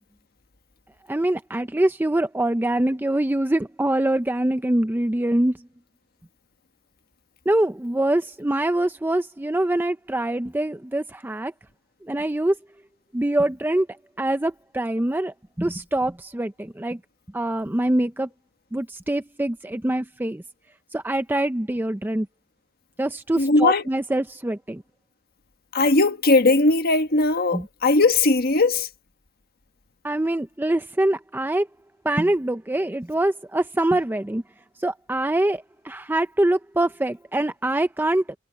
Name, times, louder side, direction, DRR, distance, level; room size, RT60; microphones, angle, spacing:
voice 1, 1.1-5.7 7.5-11.5 12.0-12.6 13.1-13.9 14.2-17.0 17.3-18.3 18.7-20.4 20.9-22.3 23.0-24.8 27.5-27.7 30.0-31.7 32.0-34.4 34.8-38.4, right 1 dB, 10° right, 0.5 m, -24 dB
voice 2, 23.4-23.8 25.7-28.9, left 3 dB, 50° left, 1.5 m, -19 dB
head